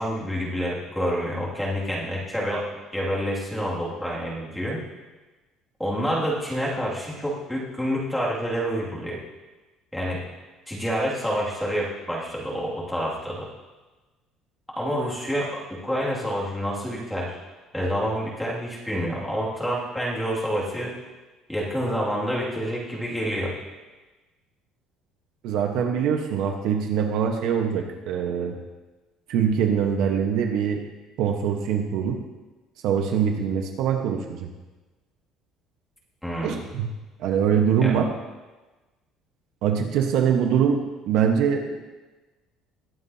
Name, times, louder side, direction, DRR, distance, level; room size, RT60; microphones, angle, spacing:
voice 1, 0.0-2.7 2.9-4.8 5.8-9.2 9.9-10.3 10.7-13.5 14.8-17.4 17.7-20.9 21.5-23.5 36.2-36.6 37.8-38.0, equal, 5° left, -5 dB, 2.3 m, -28 dB
voice 2, 25.4-28.5 29.3-30.8 31.2-32.2 32.8-34.5 36.4-36.9 37.2-38.1 39.6-40.8 41.1-41.8, right 7 dB, 65° right, 3 dB, 1.2 m, -23 dB
21.0 x 7.5 x 2.8 m, 1.2 s
cardioid pair, 150°, 0 cm